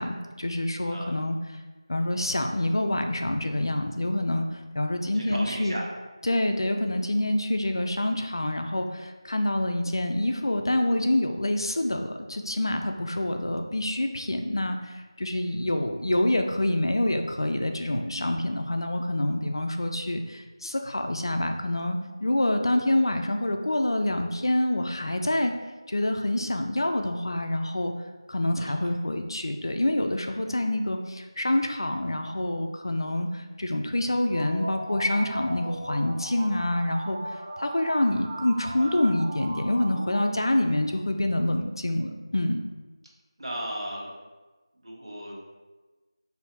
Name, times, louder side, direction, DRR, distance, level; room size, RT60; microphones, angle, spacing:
voice 1, 0.0-1.4 1.9-5.8 6.2-25.5 25.9-27.9 28.3-37.2 37.6-42.6, left 1 dB, 55° left, 5 dB, 0.4 m, -27 dB
voice 2, 5.1-5.9 28.6-28.9 38.8-39.0 43.4-44.1 44.8-45.4, equal, 70° right, -4 dB, 1.3 m, -36 dB
sound 1, 34.1-40.9, right 1 dB, 20° right, 0.9 m, -38 dB
4.8 x 2.7 x 3.2 m, 1.2 s
figure-of-eight pair, 175°, 3 cm